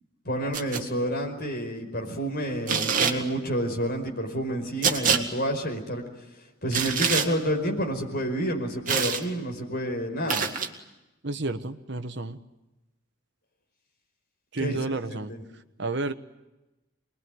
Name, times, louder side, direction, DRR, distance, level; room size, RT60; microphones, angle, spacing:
voice 1, 0.3-6.1 6.6-10.5 14.6-14.8 15.1-15.4, equal, 45° left, 2 dB, 5.1 m, -29 dB
sound 1, 0.5-0.8 2.7-3.2 4.8-5.2 6.7-7.3 8.9-9.2 10.3-10.7, right 6 dB, 40° right, 2.0 m, -25 dB
voice 2, 11.2-12.4 14.5-15.3 15.8-16.1, right 2 dB, 55° right, 9 dB, 1.3 m, -31 dB
25.5 x 21.5 x 9.6 m, 1.0 s
head